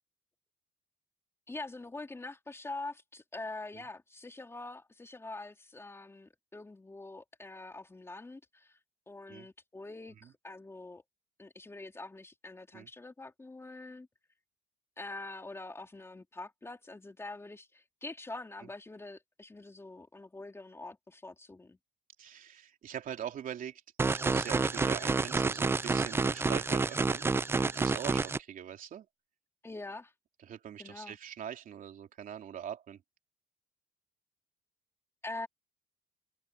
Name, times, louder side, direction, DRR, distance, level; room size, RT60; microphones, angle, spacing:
voice 1, 1.5-8.8 9.1-11.0 11.4-14.1 15.0-21.8 29.6-30.1 30.8-31.2 35.2-35.5, left 2 dB, 15° left, 3.1 m, -44 dB
voice 2, 22.2-27.2 27.5-29.1 30.4-33.0, right 9 dB, 55° right, 3.2 m, -43 dB
sound 1, 24.0-28.4, right 4 dB, 15° right, 0.4 m, -29 dB
cardioid pair, 110°, 17 cm